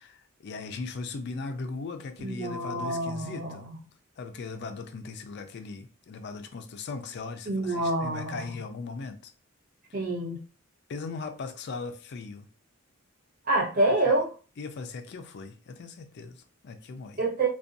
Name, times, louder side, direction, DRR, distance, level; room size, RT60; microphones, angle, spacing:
voice 1, 0.0-3.7 4.2-9.3 10.9-12.5 14.0-14.1 14.6-17.2, left 4 dB, 50° left, 0.3 m, -38 dB
voice 2, 2.2-3.8 7.5-8.5 9.9-10.4 13.5-14.3 17.2-17.5, right 2 dB, 40° right, 0.8 m, -27 dB
2.5 x 2.2 x 2.5 m
head